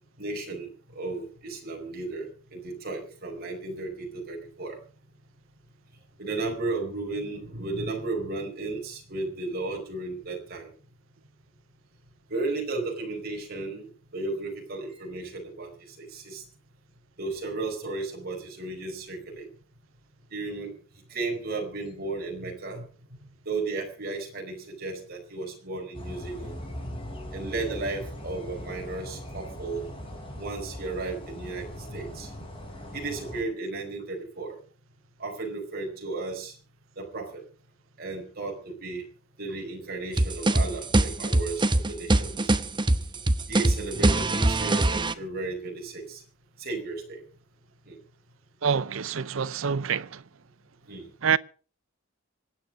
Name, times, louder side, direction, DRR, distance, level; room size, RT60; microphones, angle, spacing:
voice 1, 0.2-4.8 6.2-10.7 12.3-15.7 16.0-16.4 17.2-19.5 20.3-20.7 21.1-26.6 27.3-29.8 30.4-31.7 31.9-32.3 32.9-34.6 35.2-36.5 37.0-37.4 38.0-39.0 39.4-42.5 43.5-46.2 46.6-47.2 47.9-48.0 50.9-51.1, right 3 dB, 50° right, 4.7 m, -34 dB
sound 1, 25.9-33.4, equal, 25° left, 6.0 m, -39 dB
sound 2, 40.2-45.1, right 2 dB, 25° right, 0.8 m, -23 dB
voice 2, 48.6-50.2 51.2-51.4, right 6 dB, 80° right, 0.6 m, -26 dB
25.5 x 9.2 x 5.1 m
head